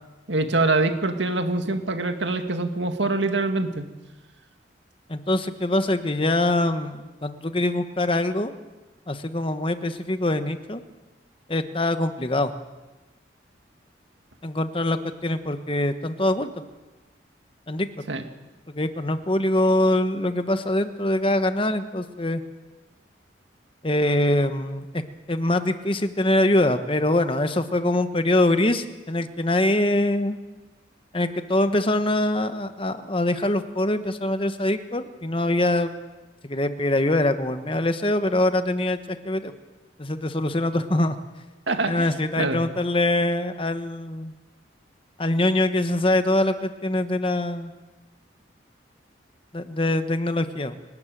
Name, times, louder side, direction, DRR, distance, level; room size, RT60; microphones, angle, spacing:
voice 1, 0.3-3.9 18.1-18.2 41.7-42.1 42.4-42.6, right 2 dB, 75° right, 6 dB, 2.1 m, -24 dB
voice 2, 5.1-8.5 9.1-10.8 11.5-12.5 14.4-16.5 17.7-17.9 18.8-22.4 23.8-25.0 25.3-30.4 31.1-35.9 36.4-39.5 40.0-41.2 41.9-44.3 45.2-47.7 49.5-50.8, left 1 dB, 30° left, 9 dB, 1.2 m, -23 dB
30.0 x 12.5 x 9.2 m, 1.2 s
head